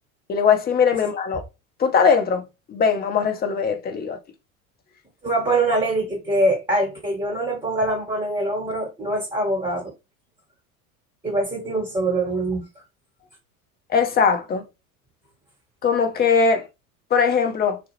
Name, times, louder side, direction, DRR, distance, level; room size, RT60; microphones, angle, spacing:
voice 1, 0.3-1.4 1.8-2.4 2.7-4.2 13.9-14.6 15.8-16.7 17.1-17.8, left 6 dB, 20° left, 0.5 m, -20 dB
voice 2, 5.2-9.9 11.2-12.7, right 2 dB, 10° right, 1.2 m, -23 dB
2.3 x 2.0 x 3.0 m
hypercardioid pair, 75°, 43 cm